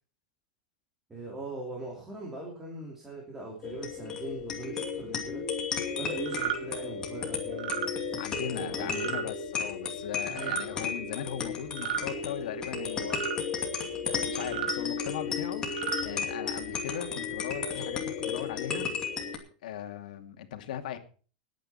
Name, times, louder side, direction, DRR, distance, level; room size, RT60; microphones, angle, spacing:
voice 1, 1.1-5.4 6.0-9.1 10.2-10.6, right 2 dB, 10° right, -1 dB, 3.1 m, -41 dB
sound 1, 3.6-19.4, left 5 dB, 15° left, 2.5 m, -34 dB
sound 2, 6.3-6.6 7.5-7.9 9.0-9.2 10.3-10.7 11.7-12.1 13.1-13.4 14.4-14.8 15.6-16.0, right 9 dB, 85° right, 3.0 m, -33 dB
voice 2, 8.2-13.2 14.0-18.9 19.6-21.0, left 10 dB, 70° left, 6 dB, 2.6 m, -39 dB
20.0 x 9.1 x 4.3 m, 0.39 s
supercardioid pair, 175°, 4 cm